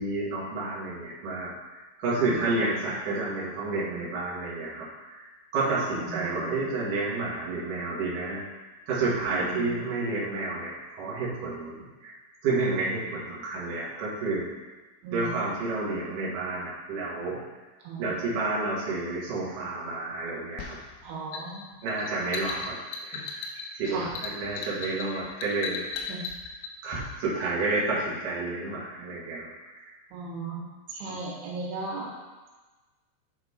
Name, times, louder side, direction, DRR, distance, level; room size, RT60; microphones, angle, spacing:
voice 1, 0.0-12.2 12.4-14.5 15.1-17.4 18.0-20.8 21.8-25.9 26.8-29.9 31.1-31.2, right 3 dB, 55° right, -7 dB, 2.7 m, -30 dB
voice 2, 6.0-6.6 9.3-9.7 15.0-15.4 17.8-18.2 21.0-21.7 23.9-24.1 26.1-26.2 30.1-32.1, right 3 dB, 85° right, -4 dB, 3.8 m, -36 dB
sound 1, 20.6-26.7, left 5 dB, 80° left, 2.7 m, -37 dB
10.0 x 4.3 x 4.2 m, 1.2 s
omnidirectional pair, 5.4 m